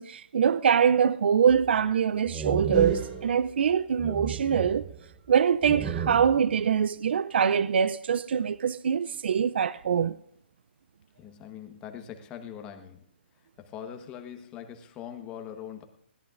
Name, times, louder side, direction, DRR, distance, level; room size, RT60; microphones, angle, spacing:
voice 1, 0.0-4.8 5.3-10.2, right 7 dB, 70° right, 0.4 m, -24 dB
sound 1, 1.5-1.9 2.3-3.7 4.0-5.3 5.6-6.6, right 6 dB, 15° right, 0.8 m, -33 dB
sound 2, 2.7-3.8, right 4 dB, 50° right, 5.0 m, -55 dB
voice 2, 11.2-13.0 13.6-15.8, left 9 dB, 20° left, 1.1 m, -42 dB
21.0 x 16.5 x 2.5 m
hypercardioid pair, 165°, 6 cm